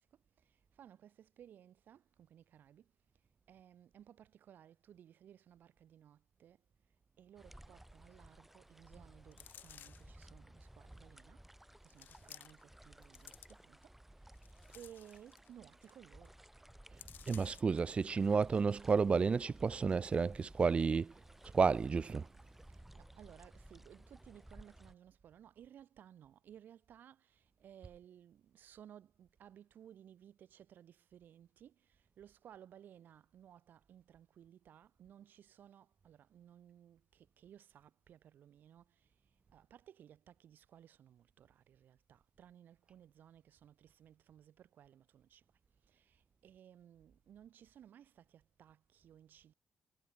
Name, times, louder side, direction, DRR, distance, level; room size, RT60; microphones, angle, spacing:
voice 1, 0.0-2.9 3.5-6.7 7.2-11.4 11.8-16.4 22.7-45.4 45.8-49.5, right 10 dB, 75° right, 5.6 m, -59 dB
sound 1, 7.4-24.9, right 1 dB, 5° right, 7.9 m, -58 dB
sound 2, 9.3-10.2 10.9-11.0 11.9-12.7 13.0-13.8 14.3-15.5 15.8-16.0 16.2-16.5 17.0-17.8 18.3-18.4, left 10 dB, 80° left, 2.4 m, -56 dB
voice 2, 17.3-21.1 21.5-22.2, right 5 dB, 35° right, 0.9 m, -31 dB
cardioid pair, 110°, 3 cm